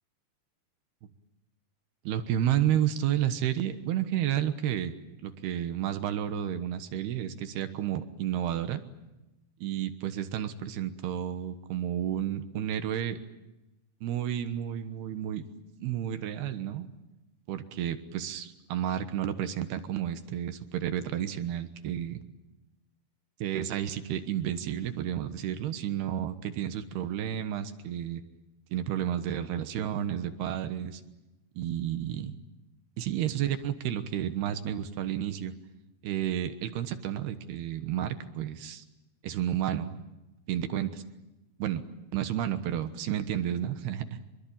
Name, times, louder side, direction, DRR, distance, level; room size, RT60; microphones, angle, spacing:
voice 1, 2.0-5.0 5.2-8.8 9.6-13.2 14.0-15.4 15.8-16.9 17.5-22.2 23.4-28.2 28.7-31.0 31.6-32.4 33.0-35.5 36.0-38.8 39.2-40.0 40.5-41.0 41.6-41.8 42.1-44.2, right 10 dB, 70° right, 9 dB, 3.1 m, -31 dB
25.5 x 22.5 x 8.8 m, 0.99 s
omnidirectional pair, 5.0 m